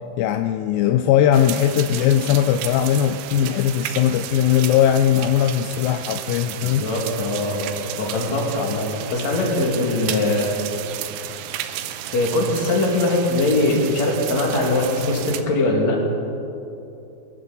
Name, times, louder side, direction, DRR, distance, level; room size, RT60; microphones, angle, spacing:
voice 1, 0.2-6.8, left 10 dB, 85° left, 8 dB, 2.1 m, -19 dB
sound 1, 1.3-15.4, right 12 dB, 85° right, 2.7 m, -33 dB
voice 2, 6.6-10.5 12.1-16.0, left 2 dB, 50° left, -1 dB, 3.1 m, -21 dB
23.0 x 12.5 x 4.0 m, 2.8 s
omnidirectional pair, 4.6 m